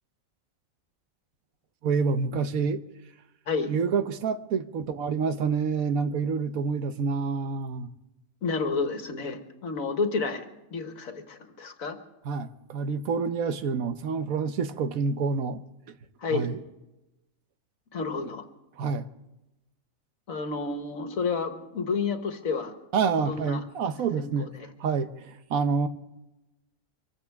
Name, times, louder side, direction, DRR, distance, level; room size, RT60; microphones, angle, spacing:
voice 1, 1.8-2.8 3.7-7.9 12.2-15.6 16.3-16.6 18.8-19.1 22.9-24.5 24.8-25.9, right 5 dB, 80° right, 1.3 m, -27 dB
voice 2, 8.4-10.5 10.7-12.0 16.2-16.5 17.9-18.4 20.3-22.7 23.3-23.6 24.2-24.3 24.5-24.7, left 4 dB, 75° left, 1.9 m, -30 dB
25.0 x 15.5 x 3.6 m
omnidirectional pair, 1.4 m